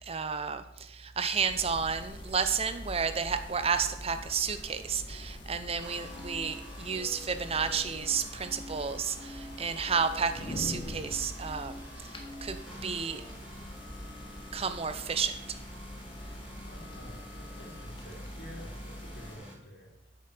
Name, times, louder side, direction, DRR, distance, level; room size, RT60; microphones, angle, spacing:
voice 1, 0.0-12.1 12.4-13.2 14.5-15.6, right 6 dB, 35° right, 10 dB, 0.7 m, -32 dB
sound 1, 1.4-19.3, equal, 25° left, 1.3 m, -44 dB
sound 2, 5.8-19.5, left 1 dB, 5° right, 4.5 m, -47 dB
voice 2, 16.7-19.9, equal, 65° left, -4 dB, 3.0 m, -49 dB
8.5 x 6.7 x 6.1 m, 0.81 s
head